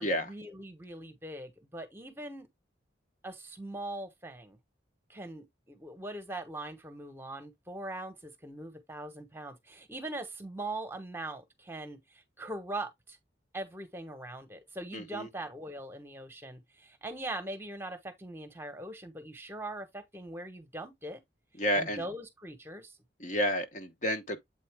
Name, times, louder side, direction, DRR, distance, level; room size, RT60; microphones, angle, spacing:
voice 1, 0.0-2.5 3.2-4.6 5.1-13.2 13.5-21.2 21.7-23.0, right 1 dB, 15° right, 1.0 m, -41 dB
voice 2, 14.9-15.3 21.6-22.0 23.2-24.4, equal, 40° left, 1.0 m, -30 dB
8.0 x 4.1 x 3.4 m
head